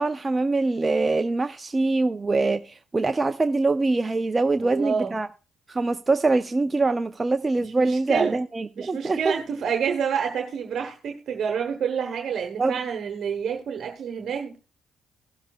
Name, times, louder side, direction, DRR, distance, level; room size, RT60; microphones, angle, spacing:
voice 1, 0.0-5.3 5.7-9.3 12.6-12.7, right 3 dB, 25° right, 0.5 m, -24 dB
voice 2, 4.6-5.1 7.8-8.4 8.8-14.6, right 7 dB, 60° right, 1.1 m, -28 dB
16.5 x 7.3 x 2.3 m
supercardioid pair, 60°, 0 cm